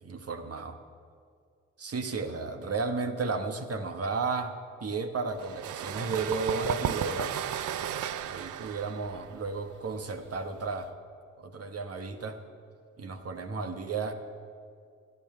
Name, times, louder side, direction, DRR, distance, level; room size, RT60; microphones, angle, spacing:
voice 1, 0.0-0.8 1.8-7.5 8.3-10.9 11.4-12.4 13.0-14.1, right 4 dB, 50° right, 7 dB, 1.4 m, -33 dB
sound 1, 5.4-10.9, right 10 dB, 70° right, 0.6 m, -35 dB
13.5 x 9.1 x 6.7 m, 2.2 s
hypercardioid pair, 45°, 32 cm